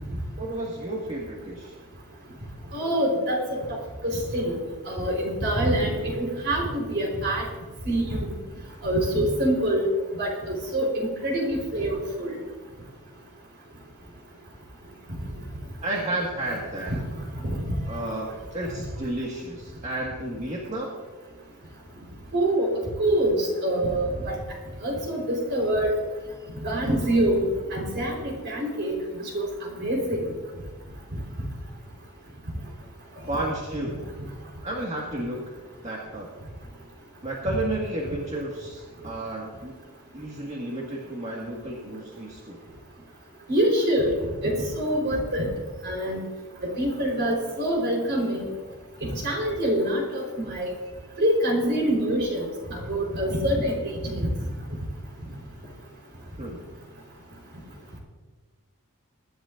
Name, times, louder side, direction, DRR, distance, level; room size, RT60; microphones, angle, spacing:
voice 1, 0.4-1.7 15.8-16.9 17.9-20.9 33.3-34.0 34.6-35.4 35.8-36.3 37.2-39.7 40.1-42.6 56.4-56.6, right 1 dB, 30° right, -3 dB, 1.8 m, -32 dB
voice 2, 2.7-3.6 4.0-4.5 4.9-7.4 7.9-8.3 8.8-9.9 10.2-12.3 17.4-17.7 22.3-22.7 23.0-24.3 24.8-25.9 26.6-30.2 43.5-44.1 44.4-45.5 45.8-46.2 46.6-48.5 49.2-50.7 51.2-53.8 54.0-54.3, right 1 dB, 55° right, -1 dB, 4.1 m, -25 dB
23.5 x 11.5 x 2.6 m, 1.3 s
head